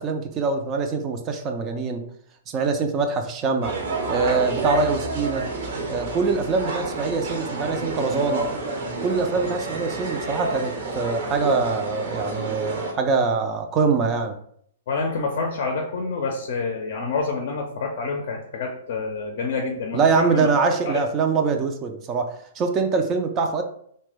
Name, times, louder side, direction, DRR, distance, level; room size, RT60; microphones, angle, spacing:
voice 1, 0.0-2.0 2.5-3.8 4.1-5.5 5.9-8.5 9.0-14.4 19.9-23.6, right 4 dB, 30° right, 5 dB, 0.4 m, -24 dB
sound 1, 3.6-12.9, right 2 dB, 55° right, 0.7 m, -29 dB
voice 2, 14.9-20.5 20.8-21.0, left 4 dB, 55° left, 2 dB, 0.5 m, -27 dB
2.8 x 2.1 x 3.3 m, 0.66 s
hypercardioid pair, 115°, 0 cm